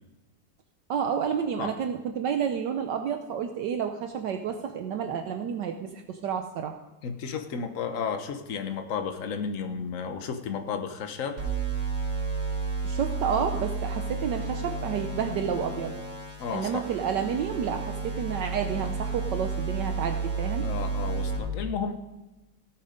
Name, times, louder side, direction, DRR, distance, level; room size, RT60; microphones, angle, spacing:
voice 1, 0.9-6.8 12.8-15.9 16.5-20.7, right 7 dB, 70° right, 5 dB, 1.3 m, -30 dB
voice 2, 7.0-11.4 16.4-16.8 20.6-21.9, left 6 dB, 50° left, 7 dB, 1.3 m, -33 dB
sound 1, 11.4-21.4, right 4 dB, 90° right, 4.7 m, -32 dB
17.0 x 8.9 x 5.1 m, 1.1 s
omnidirectional pair, 2.1 m